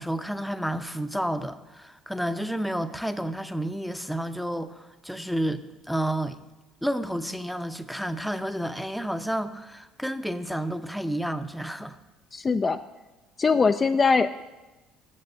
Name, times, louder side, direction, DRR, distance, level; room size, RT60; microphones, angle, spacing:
voice 1, 0.0-6.4 6.8-12.0, right 1 dB, ahead, 10 dB, 0.7 m, -30 dB
voice 2, 12.3-12.8 13.4-14.5, left 4 dB, 30° left, 8 dB, 0.4 m, -22 dB
7.6 x 7.0 x 7.9 m, 1.1 s
hypercardioid pair, 60°, 0 cm